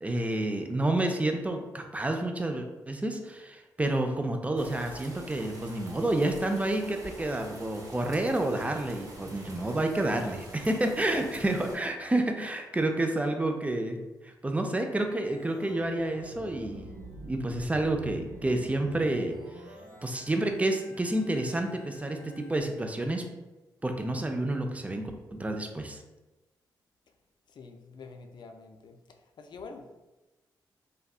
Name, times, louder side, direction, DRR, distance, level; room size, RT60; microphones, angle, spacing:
voice 1, 0.0-14.0 14.2-16.9 17.3-19.4 20.0-23.3 23.8-26.0, right 1 dB, 15° right, 4 dB, 0.4 m, -29 dB
sound 1, 4.6-11.8, right 1 dB, 40° right, 0.7 m, -46 dB
Organ, 15.2-22.6, right 1 dB, 80° right, 1.2 m, -47 dB
voice 2, 27.5-29.0 29.4-30.0, left 4 dB, 55° left, 5 dB, 0.3 m, -45 dB
2.6 x 2.2 x 2.3 m, 1.1 s
hypercardioid pair, 40°, 9 cm